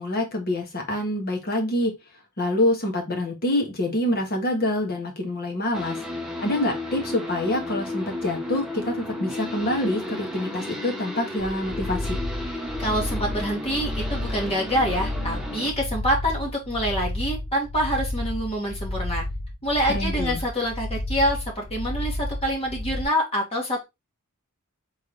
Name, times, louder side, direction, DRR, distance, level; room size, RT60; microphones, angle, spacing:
voice 1, 0.0-1.9 2.4-6.0 6.4-12.2 19.9-20.4, left 1 dB, 45° left, 3 dB, 1.5 m, -26 dB
sound 1, 5.7-15.7, left 1 dB, ahead, 0.9 m, -33 dB
sound 2, 11.4-23.0, left 1 dB, 65° left, 1.0 m, -31 dB
voice 2, 12.8-19.2 19.6-23.8, equal, 25° left, -1 dB, 1.7 m, -26 dB
3.9 x 3.4 x 3.8 m, 0.22 s
head